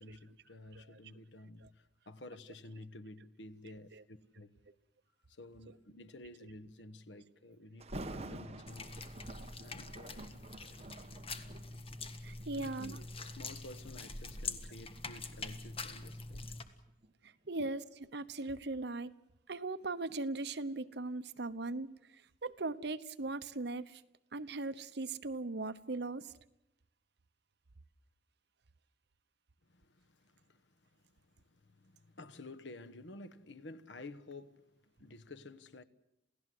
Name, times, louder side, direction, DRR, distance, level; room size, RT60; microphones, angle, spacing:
voice 1, 0.0-4.6 5.3-9.0 9.6-10.3 12.5-16.5 17.6-17.7 29.6-35.8, left 2 dB, 80° left, 1.2 m, -52 dB
Thunder, 7.8-12.8 13.4-13.7 14.3-17.1 17.4-17.5, right 1 dB, 35° right, 1.4 m, -49 dB
sound 1, 8.7-16.6, left 3 dB, 30° left, 1.7 m, -45 dB
voice 2, 12.2-13.0 17.2-17.8 18.1-19.1 19.5-24.0 24.3-26.3, right 2 dB, 65° right, 1.0 m, -39 dB
28.5 x 17.0 x 7.8 m
head